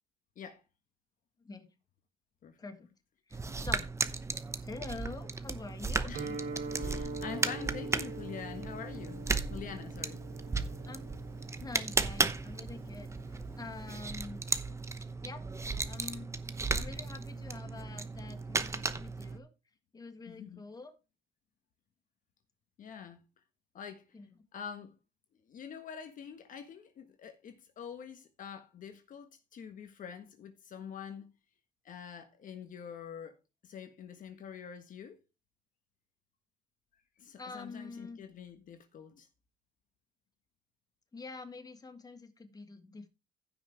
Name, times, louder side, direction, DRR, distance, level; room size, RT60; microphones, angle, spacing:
voice 1, 3.3-3.9 4.6-6.1 10.9-11.1 11.6-14.4 15.2-15.4 15.9-16.3 16.8-19.5 19.9-20.9 24.1-24.3 37.4-38.2 41.1-43.1, left 3 dB, 20° left, 1.7 m, -46 dB
sound 1, 3.3-19.4, right 3 dB, 15° right, 0.9 m, -35 dB
voice 2, 6.1-6.4 6.8-10.2 20.3-20.6 22.8-23.2 23.7-24.0 24.5-24.9 25.5-31.3 31.8-33.4 33.6-35.2 37.2-39.3, left 7 dB, 50° left, 1.4 m, -45 dB
Guitar, 6.1-13.9, right 3 dB, 65° right, 4.0 m, -44 dB
15.5 x 6.1 x 3.4 m
cardioid pair, 110°, 17 cm